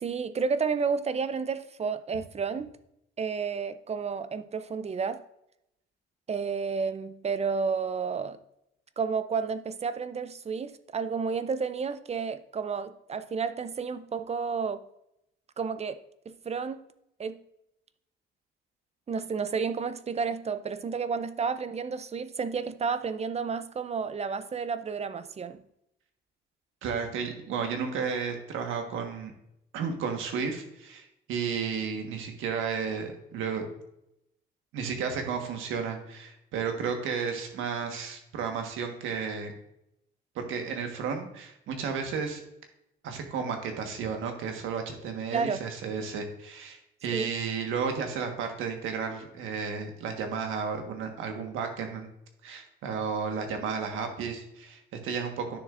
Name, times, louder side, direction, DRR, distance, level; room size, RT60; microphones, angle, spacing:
voice 1, 0.0-2.7 3.2-5.2 6.3-8.4 9.0-14.8 15.6-16.0 16.3-16.8 17.2-17.4 19.1-25.6 45.3-45.6 47.1-47.3, right 5 dB, 30° right, 0.5 m, -31 dB
voice 2, 26.8-29.3 29.7-33.7 34.7-39.5 40.3-42.4 43.0-52.1 52.4-55.6, right 6 dB, 90° right, 1.4 m, -33 dB
10.0 x 6.6 x 2.5 m
cardioid pair, 90°, 20 cm